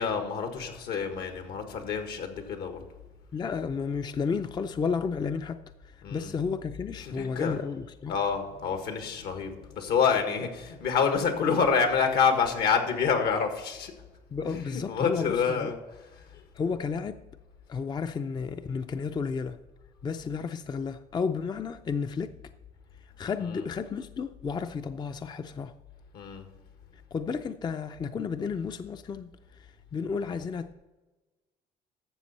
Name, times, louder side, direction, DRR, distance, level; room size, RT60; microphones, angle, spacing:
voice 1, 0.0-2.8 6.0-6.3 7.0-7.6 8.1-13.9 14.4-15.8 16.3-16.4 23.4-23.6 26.1-26.5, left 6 dB, 75° left, 1.6 m, -27 dB
voice 2, 3.3-5.6 6.1-8.2 14.3-15.7 16.5-17.2 17.7-19.6 20.0-22.3 23.2-25.7 27.1-29.3 29.6-30.7, left 5 dB, 25° left, 0.4 m, -32 dB
12.5 x 7.0 x 4.2 m
cardioid pair, 110°, 17 cm